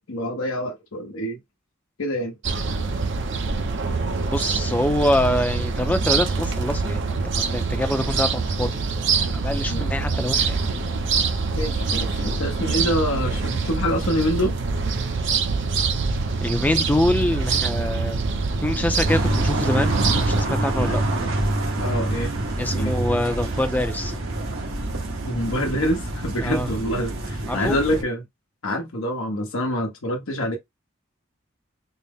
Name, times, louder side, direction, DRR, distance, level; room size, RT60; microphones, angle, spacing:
voice 1, 0.1-1.4 2.0-2.3 9.7-9.9 11.5-14.6 20.9-21.3 21.8-22.3 22.7-23.0 25.2-28.2 28.6-30.6, equal, 85° left, 0.9 m, -26 dB
sound 1, 2.4-20.4, right 4 dB, 60° right, 0.7 m, -25 dB
voice 2, 4.3-8.8 9.2-10.6 16.4-18.2 18.6-21.0 22.6-24.2 26.4-26.7 27.5-27.8, left 1 dB, 10° left, 0.5 m, -25 dB
sound 2, 19.0-28.0, right 1 dB, 80° right, 1.2 m, -26 dB
4.1 x 2.1 x 3.5 m
head